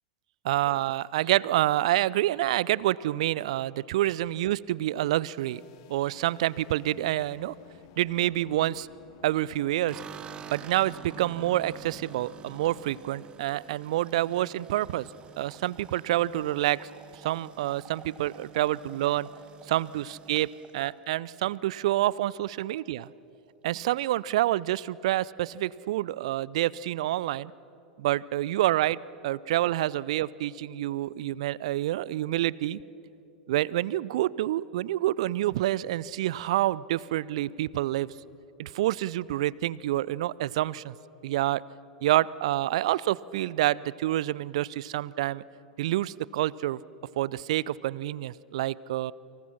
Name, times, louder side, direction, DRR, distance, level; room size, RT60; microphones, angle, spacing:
voice 1, 0.5-5.6 5.9-7.5 8.0-8.9 9.2-10.0 10.5-15.1 15.4-19.3 19.7-23.1 23.6-27.5 28.0-32.8 33.5-38.1 38.6-41.0 41.2-41.6 42.0-45.4 45.8-46.8 47.2-49.1, right 14 dB, 55° right, 22 dB, 0.5 m, -28 dB
sound 1, 5.4-13.0, left 10 dB, 50° left, 1.8 m, -54 dB
sound 2, 9.9-22.1 22.5-23.1 23.3-23.4 23.7-24.5, right 8 dB, 25° right, 1.1 m, -48 dB
29.0 x 25.5 x 5.9 m, 2.9 s
figure-of-eight pair, 90°, 4 cm